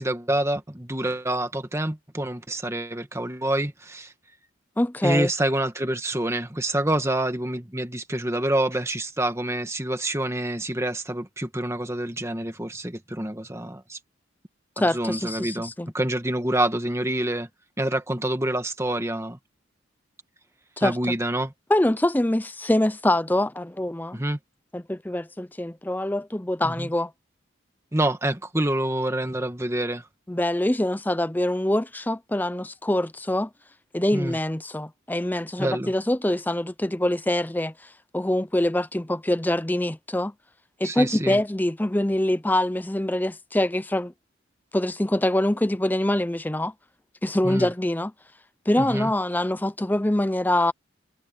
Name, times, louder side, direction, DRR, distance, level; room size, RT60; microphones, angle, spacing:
voice 1, 0.0-4.1 5.0-14.0 14.8-17.5 17.8-19.4 20.8-21.5 24.1-24.4 26.6-26.9 27.9-30.0 34.1-34.4 35.6-35.9 40.8-41.4 47.4-47.7 48.8-49.1, right 1 dB, 15° right, 1.7 m, -27 dB
voice 2, 4.8-5.3 14.8-15.9 20.8-21.0 21.7-24.2 24.7-27.1 30.3-33.5 33.9-37.7 38.1-40.3 40.8-44.1 44.7-46.7 47.2-48.1 48.7-50.7, left 1 dB, 10° left, 0.5 m, -24 dB
head